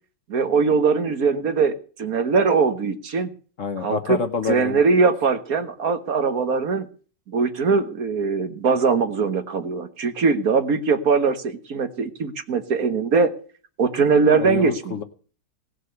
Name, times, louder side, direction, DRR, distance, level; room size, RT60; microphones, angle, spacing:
voice 1, 0.3-3.3 3.8-4.2 4.5-6.9 7.3-13.3 13.8-15.0, right 5 dB, 55° right, 9 dB, 1.6 m, -21 dB
voice 2, 3.6-4.8 14.4-15.0, left 5 dB, 50° left, 8 dB, 1.3 m, -27 dB
18.5 x 6.6 x 7.9 m, 0.41 s
omnidirectional pair, 1.9 m